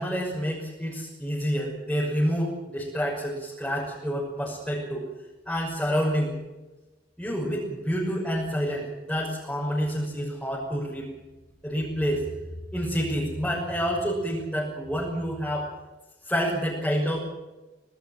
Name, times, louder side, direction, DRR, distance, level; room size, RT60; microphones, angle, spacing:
voice 1, 0.0-5.0 5.5-6.4 7.2-11.1 11.6-12.2 12.7-15.6 16.2-17.2, equal, 5° left, -6 dB, 6.1 m, -28 dB
27.0 x 18.5 x 7.5 m, 1.1 s
head